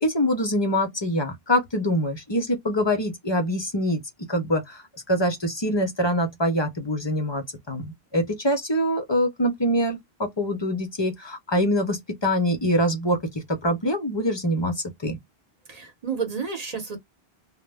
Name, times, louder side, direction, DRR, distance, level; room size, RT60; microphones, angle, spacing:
voice 1, 0.0-4.0 4.3-4.8 5.1-14.7 15.0-15.2, equal, 35° left, 0.4 m, -24 dB
voice 2, 15.7-17.0, right 6 dB, 40° right, 0.8 m, -31 dB
2.0 x 2.0 x 3.3 m
omnidirectional pair, 1.1 m